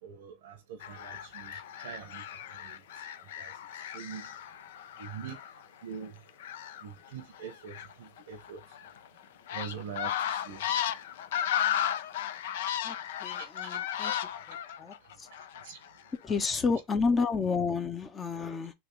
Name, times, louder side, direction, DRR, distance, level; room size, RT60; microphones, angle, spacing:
voice 1, 0.0-4.3 5.0-5.4 5.8-6.2 6.8-8.6 9.5-10.6 13.4-14.4 15.3-15.8, right 7 dB, 75° right, 0.7 m, -45 dB
sound 1, 0.8-5.6 6.3-9.1 9.5-15.9 16.3-16.4, left 10 dB, 75° left, 0.4 m, -35 dB
voice 2, 13.2-14.1 14.8-14.9 16.2-18.7, left 4 dB, 25° left, 0.8 m, -30 dB
3.4 x 2.5 x 3.1 m
hypercardioid pair, 100°, 0 cm